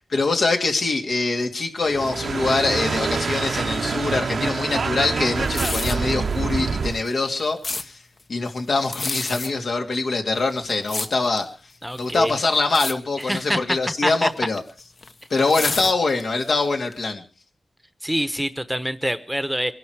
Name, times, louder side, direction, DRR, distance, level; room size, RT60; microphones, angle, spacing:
voice 1, 0.1-8.0 8.3-11.5 12.0-14.6 15.3-17.2, left 3 dB, 75° left, 3 dB, 2.7 m, -23 dB
sound 1, 1.8-7.0, right 5 dB, 70° right, 0.8 m, -26 dB
sound 2, 5.4-6.1 6.9-7.9 8.8-9.5 10.3-11.5 11.9-12.3 12.6-12.9 13.2-13.5 14.4-16.5 16.9-17.0, left 3 dB, 50° left, 1.2 m, -29 dB
voice 2, 11.8-12.3 13.3-13.8 14.0-14.3 18.0-19.7, equal, 5° right, 13 dB, 1.0 m, -25 dB
23.5 x 11.5 x 4.8 m, 0.36 s
wide cardioid pair, 80°, 0 cm